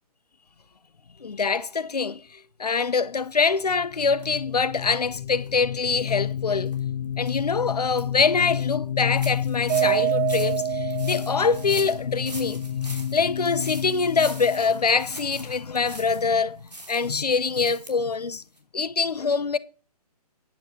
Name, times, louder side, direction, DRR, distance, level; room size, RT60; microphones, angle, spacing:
voice 1, 1.2-6.7 7.2-12.6 12.9-18.4 18.7-19.6, left 5 dB, 75° left, 0.8 m, -24 dB
sound 1, 3.7-16.1, left 9 dB, 50° left, 0.7 m, -31 dB
sound 2, 4.2-4.3 4.8-4.9 5.4-5.5 6.0-6.1 6.6-6.8 7.2-7.4 7.7-8.0 8.5-8.6 9.2-16.3 16.7-17.9 18.2-18.3 18.6-18.7, right 1 dB, 85° right, 3.4 m, -42 dB
Mallet percussion, 9.7-12.0, right 17 dB, 30° right, 1.1 m, -26 dB
10.0 x 8.0 x 4.3 m
figure-of-eight pair, 130°, 20 cm